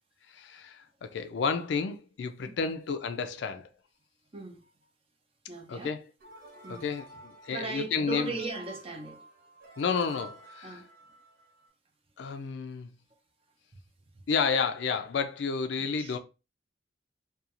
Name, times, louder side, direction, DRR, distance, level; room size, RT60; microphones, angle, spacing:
voice 1, 0.3-3.7 5.7-6.0 6.7-8.3 9.8-10.8 12.2-12.9 14.3-16.2, left 5 dB, 70° left, 0.4 m, -31 dB
voice 2, 4.3-4.6 5.5-6.0 6.6-6.9 7.5-9.2 10.6-10.9 12.3-12.4 16.0-16.2, right 3 dB, 35° right, 0.6 m, -38 dB
sound 1, 6.2-11.7, right 2 dB, 60° right, 1.1 m, -51 dB
2.4 x 2.3 x 2.8 m
head